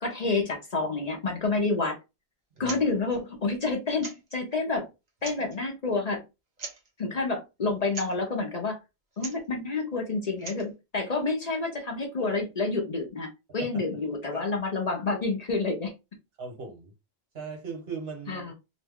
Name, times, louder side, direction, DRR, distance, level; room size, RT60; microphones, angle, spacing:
voice 1, 0.0-2.0 2.6-4.9 5.2-6.2 7.0-8.8 9.2-15.9 18.3-18.5, left 3 dB, 45° left, 0.7 m, -29 dB
sound 1, 2.6-2.8 3.1-3.2 4.0-4.4 5.1-5.6 6.6-6.9 7.9-8.2 9.1-9.5 10.3-10.7, right 3 dB, 45° right, 0.9 m, -40 dB
voice 2, 16.4-16.9 17.3-18.5, right 5 dB, 75° right, 1.4 m, -38 dB
2.8 x 2.2 x 3.4 m
omnidirectional pair, 1.1 m